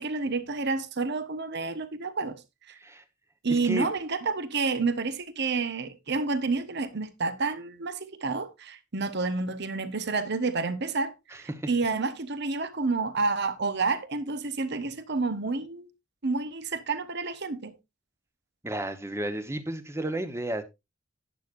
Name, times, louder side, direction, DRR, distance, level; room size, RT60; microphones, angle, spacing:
voice 1, 0.0-2.4 2.7-2.8 3.4-15.9 16.2-17.7, right 4 dB, 55° right, 1.1 m, -29 dB
voice 2, 3.5-3.9 11.5-11.7 18.6-20.6, right 1 dB, 15° right, 1.0 m, -32 dB
11.5 x 10.0 x 2.5 m
head